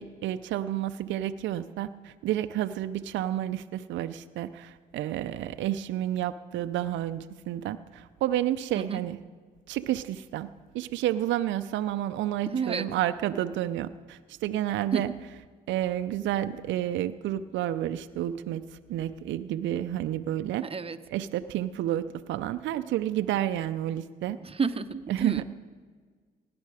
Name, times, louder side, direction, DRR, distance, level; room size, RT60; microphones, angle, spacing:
voice 1, 0.0-9.2 9.7-10.5 10.7-15.1 15.7-18.6 18.9-20.6 21.1-24.4 25.1-25.4, right 12 dB, 70° right, 10 dB, 0.5 m, -30 dB
voice 2, 12.5-12.9 14.9-15.0 20.6-21.0 24.4-25.4, right 5 dB, 30° right, 10 dB, 0.8 m, -30 dB
17.5 x 9.6 x 4.9 m, 1.5 s
hypercardioid pair, 55°, 20 cm